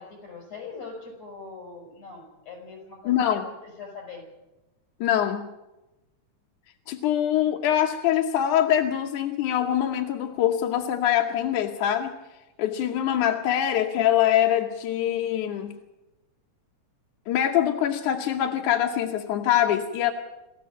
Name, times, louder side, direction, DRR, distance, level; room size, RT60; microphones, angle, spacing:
voice 1, 0.0-4.3 15.5-15.6, left 4 dB, 55° left, 3 dB, 7.2 m, -42 dB
voice 2, 3.1-3.4 5.0-5.5 6.9-12.1 12.6-15.7 17.3-20.1, left 11 dB, 75° left, 1 dB, 2.4 m, -24 dB
27.5 x 14.5 x 7.5 m, 1.0 s
omnidirectional pair, 3.6 m